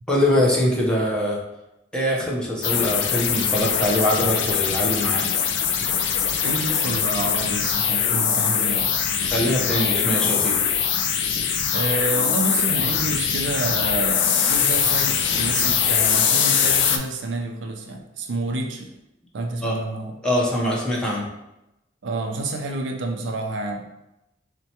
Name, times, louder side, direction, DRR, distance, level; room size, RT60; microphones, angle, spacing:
voice 1, 0.1-1.4 1.9-5.2 9.2-10.6 19.6-19.8 20.2-21.2, left 1 dB, 5° left, -4 dB, 0.7 m, -23 dB
sound 1, 2.6-17.0, left 7 dB, 70° left, 0.4 m, -22 dB
voice 2, 6.4-8.9 11.7-19.0 19.3-20.1 22.0-23.8, right 2 dB, 70° right, 3 dB, 0.4 m, -29 dB
4.4 x 2.2 x 2.8 m, 0.92 s
head